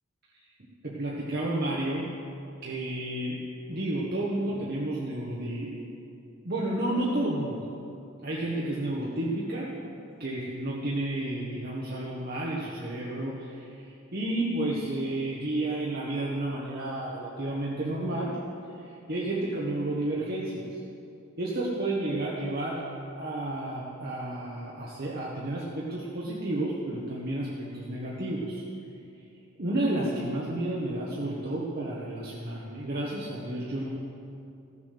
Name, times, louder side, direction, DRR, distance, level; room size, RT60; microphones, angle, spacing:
voice 1, 0.8-2.1 2.6-3.4 3.7-5.8 6.4-7.7 8.2-9.7 10.2-18.4 18.7-20.8 21.4-22.8 23.2-28.6 29.6-33.9, right 1 dB, 50° right, -5 dB, 1.3 m, -31 dB
15.0 x 7.2 x 6.6 m, 2.6 s
head